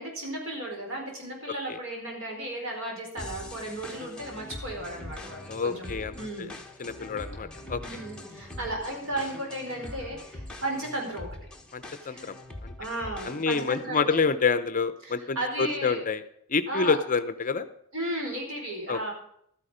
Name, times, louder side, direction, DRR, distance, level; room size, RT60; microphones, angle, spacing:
voice 1, 0.0-6.5 7.8-11.3 12.0-12.3 12.8-14.3 15.0-16.0 16.7-17.0 17.9-19.1, right 1 dB, 60° right, 0 dB, 4.6 m, -35 dB
sound 1, 3.2-13.8, left 1 dB, 5° left, 1.4 m, -43 dB
voice 2, 5.5-6.5 6.8-7.8 11.7-12.4 12.6-12.7 13.2-16.2 16.5-17.7 18.9-19.1, left 5 dB, 35° left, 12 dB, 0.7 m, -28 dB
12.5 x 9.8 x 5.0 m, 0.72 s
head